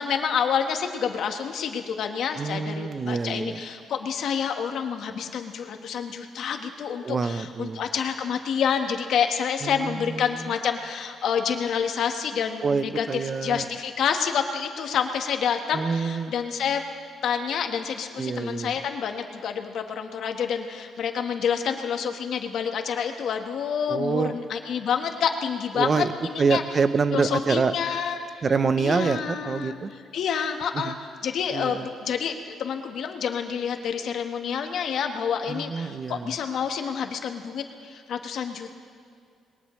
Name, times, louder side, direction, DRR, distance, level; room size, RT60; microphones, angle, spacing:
voice 1, 0.0-13.0 13.4-16.8 17.2-26.6 27.1-28.4 28.8-29.7 30.1-30.9 31.2-38.7, left 7 dB, 70° left, 5 dB, 1.4 m, -28 dB
voice 2, 2.4-3.6 7.0-7.8 9.6-10.5 12.6-13.7 15.7-16.3 18.2-18.7 23.9-24.4 25.8-26.1 26.4-27.7 28.4-29.9 30.7-30.9 31.5-31.9 35.5-36.4, right 5 dB, 40° right, 13 dB, 0.7 m, -26 dB
21.0 x 19.0 x 3.2 m, 2.2 s
cardioid pair, 90°, 0 cm